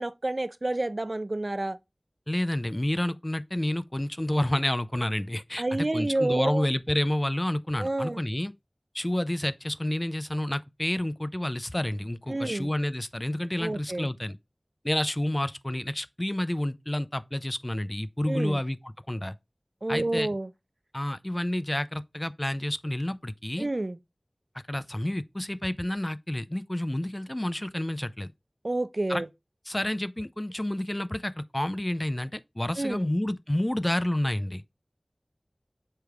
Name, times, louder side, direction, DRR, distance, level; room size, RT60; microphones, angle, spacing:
voice 1, 0.0-1.8 5.6-6.7 7.8-8.2 12.3-12.7 13.6-14.1 18.3-18.6 19.8-20.5 23.6-24.0 28.6-29.3 32.8-33.1, right 2 dB, 60° right, 0.4 m, -29 dB
voice 2, 2.3-5.6 5.9-8.5 8.9-14.4 14.8-19.3 19.9-20.3 20.9-23.7 24.7-28.3 29.1-29.2 29.7-34.6, left 1 dB, 25° left, 0.5 m, -29 dB
6.6 x 4.6 x 3.5 m
wide cardioid pair, 45°, 0 cm